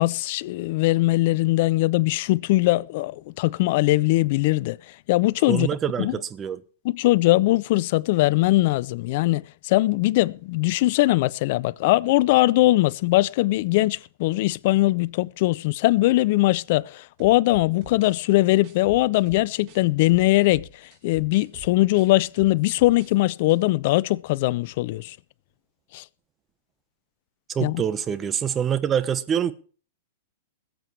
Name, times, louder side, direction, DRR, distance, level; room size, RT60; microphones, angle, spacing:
voice 1, 0.0-4.8 5.1-5.7 6.0-6.2 6.8-20.7 21.0-25.2 25.9-26.0 27.6-27.8, left 18 dB, 55° left, 0.5 m, -21 dB
voice 2, 5.5-6.6 27.5-29.5, right 8 dB, 25° right, 1.1 m, -25 dB
sound 1, 17.2-19.8 20.1-23.1 23.4-23.6, right 6 dB, 40° right, 5.2 m, -46 dB
20.5 x 7.7 x 4.6 m
hypercardioid pair, 105°, 0 cm